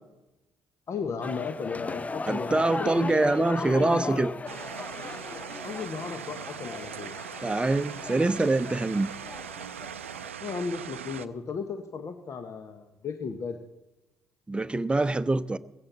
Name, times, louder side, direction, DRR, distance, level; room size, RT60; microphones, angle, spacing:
voice 1, 0.9-4.3 5.6-7.1 10.4-13.6, left 5 dB, 45° left, 1.1 m, -35 dB
sound 1, 1.2-10.3, left 3 dB, 20° left, 0.4 m, -39 dB
voice 2, 2.3-4.3 7.4-9.1 14.5-15.6, right 2 dB, 15° right, 0.8 m, -25 dB
sound 2, 4.5-11.3, right 9 dB, 90° right, 0.4 m, -40 dB
16.5 x 15.5 x 4.0 m
figure-of-eight pair, 50°, 7 cm